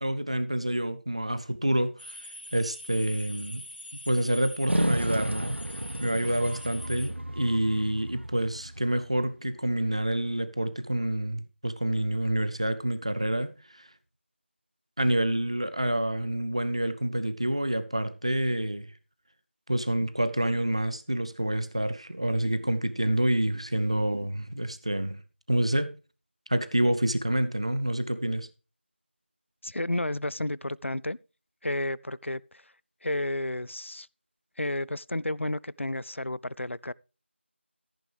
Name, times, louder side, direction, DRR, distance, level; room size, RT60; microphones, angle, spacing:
voice 1, 0.0-2.2 2.5-3.6 4.1-5.6 6.0-13.9 15.0-18.9 19.7-25.2 25.5-25.9 26.5-28.5, right 1 dB, 30° right, 0.7 m, -28 dB
sound 1, 2.0-7.1, left 1 dB, 50° left, 2.9 m, -44 dB
sound 2, 4.7-9.2, right 1 dB, 65° right, 1.0 m, -32 dB
voice 2, 29.6-31.2 31.6-32.7 33.0-34.1 34.6-36.9, left 1 dB, 80° left, 0.5 m, -31 dB
14.5 x 8.8 x 3.3 m
figure-of-eight pair, 175°, 7 cm